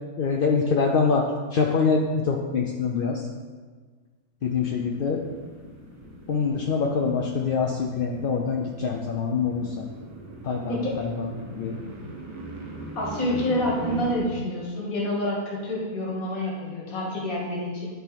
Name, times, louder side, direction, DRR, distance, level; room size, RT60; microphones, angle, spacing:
voice 1, 0.2-1.2 1.5-3.3 4.4-5.2 6.3-9.7 10.4-11.8, left 5 dB, 60° left, 0 dB, 0.6 m, -25 dB
sound 1, 4.4-14.2, right 2 dB, 25° right, 0.8 m, -40 dB
voice 2, 10.7-11.0 13.0-17.9, left 1 dB, 75° left, -2 dB, 1.9 m, -28 dB
10.5 x 4.0 x 4.0 m, 1.5 s
omnidirectional pair, 1.5 m